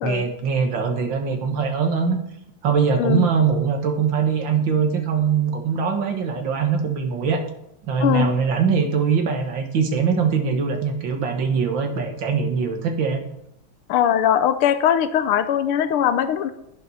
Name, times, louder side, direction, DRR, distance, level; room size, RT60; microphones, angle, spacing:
voice 1, 0.0-2.2 2.6-7.4 7.8-13.2, right 6 dB, 60° right, 5 dB, 2.0 m, -22 dB
voice 2, 8.0-8.4 13.9-16.5, left 9 dB, 85° left, 11 dB, 1.6 m, -20 dB
11.0 x 10.0 x 4.2 m, 0.83 s
omnidirectional pair, 2.4 m